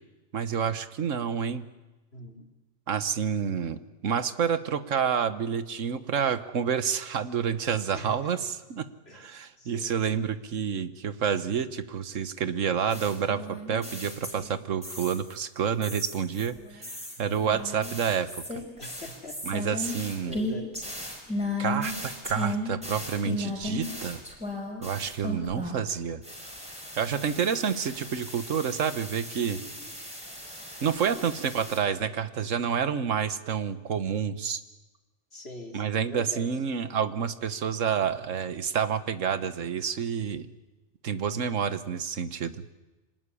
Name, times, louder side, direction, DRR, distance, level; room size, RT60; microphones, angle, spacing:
voice 1, 0.3-1.7 2.9-8.9 9.1-13.4 13.7-16.8 17.2-18.3 19.4-20.4 21.6-24.2 24.8-26.2 27.0-29.6 30.8-34.6 35.7-40.5 41.0-42.6, right 7 dB, 80° right, 13 dB, 1.5 m, -29 dB
voice 2, 2.1-2.4 7.9-8.3 9.1-9.3 9.6-9.9 17.3-17.6 18.8-19.8 20.2-20.9 27.5-27.7 29.6-29.9 30.5-30.7 31.1-31.3 35.3-36.5, equal, 55° left, 3 dB, 3.2 m, -44 dB
sound 1, 12.9-15.4 15.8-25.9 26.2-31.8, left 1 dB, 5° right, 5.5 m, -36 dB
25.5 x 19.0 x 9.9 m, 1.1 s
omnidirectional pair, 1.3 m